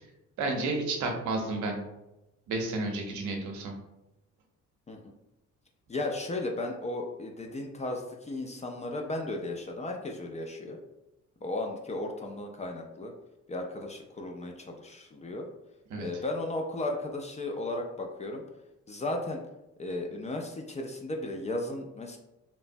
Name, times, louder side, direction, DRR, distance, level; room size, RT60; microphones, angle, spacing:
voice 1, 0.4-1.8 2.5-3.7 15.9-16.1, right 2 dB, 75° right, 2 dB, 0.7 m, -31 dB
voice 2, 5.9-10.8 11.4-13.1 13.5-15.5 16.0-18.4 18.9-19.4 19.8-22.2, left 2 dB, 25° left, 2 dB, 0.3 m, -35 dB
3.1 x 2.0 x 2.5 m, 0.94 s
cardioid pair, 90°, 30 cm